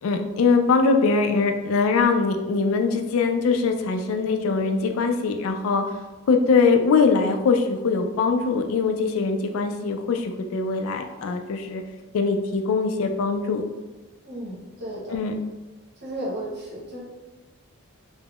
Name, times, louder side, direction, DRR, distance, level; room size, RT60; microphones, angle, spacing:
voice 1, 0.0-5.8 6.3-11.8 12.1-13.6 15.1-15.4, left 4 dB, 80° left, 5 dB, 0.3 m, -22 dB
voice 2, 14.2-15.1 16.0-17.0, right 1 dB, 50° right, -5 dB, 0.9 m, -33 dB
3.4 x 2.0 x 2.3 m, 1.2 s
head